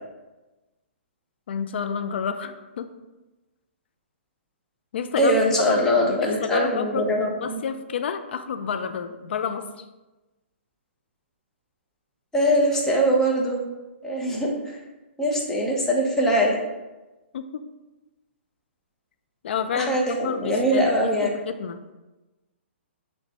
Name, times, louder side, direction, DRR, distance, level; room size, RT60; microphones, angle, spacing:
voice 1, 1.5-2.9 4.9-5.3 5.7-7.1 7.4-9.7 17.3-17.6 19.4-20.0 20.2-21.8, left 7 dB, 60° left, 9 dB, 0.3 m, -29 dB
voice 2, 5.2-7.6 12.3-13.6 14.0-14.8 15.2-16.6 19.7-21.3, equal, 5° left, -3 dB, 0.7 m, -22 dB
5.9 x 2.2 x 2.9 m, 1.1 s
hypercardioid pair, 130°, 7 cm